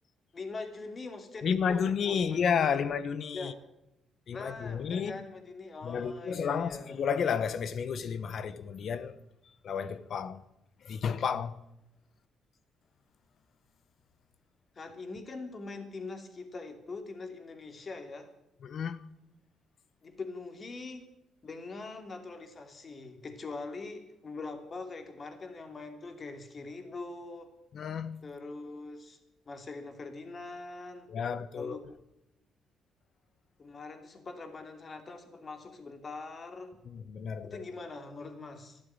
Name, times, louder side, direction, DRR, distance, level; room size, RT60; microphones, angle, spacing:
voice 1, 0.3-2.8 3.3-3.6 4.3-7.0 14.8-18.3 20.0-21.1 21.4-27.5 28.2-29.2 29.5-31.1 31.5-31.8 33.6-36.8 37.4-38.8, left 3 dB, 40° left, 2.8 m, -43 dB
voice 2, 1.4-3.5 4.3-5.2 5.8-9.2 9.6-10.4 10.8-11.6 18.6-19.0 27.7-28.2 31.1-31.8 36.9-37.6, left 7 dB, 60° left, 1.0 m, -31 dB
13.0 x 12.0 x 8.8 m
cardioid pair, 90°, 0 cm